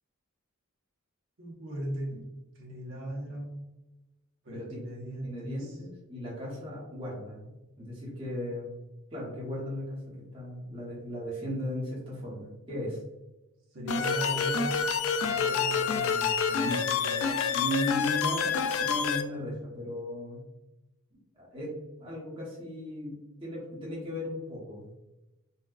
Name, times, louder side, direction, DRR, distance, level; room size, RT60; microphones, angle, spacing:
voice 1, 1.4-2.2 2.6-3.5 4.4-5.8 13.7-14.8 15.2-17.3, right 1 dB, 60° right, -5 dB, 0.9 m, -38 dB
voice 2, 5.2-7.5 7.8-8.8 9.1-10.0 10.3-13.0 16.6-16.8 17.5-18.5 18.8-20.4 21.4-21.7 22.0-24.9, left 1 dB, 25° right, -6 dB, 1.0 m, -36 dB
sound 1, 13.9-19.2, left 6 dB, 70° left, 0.3 m, -28 dB
4.1 x 2.2 x 2.3 m, 1.0 s
head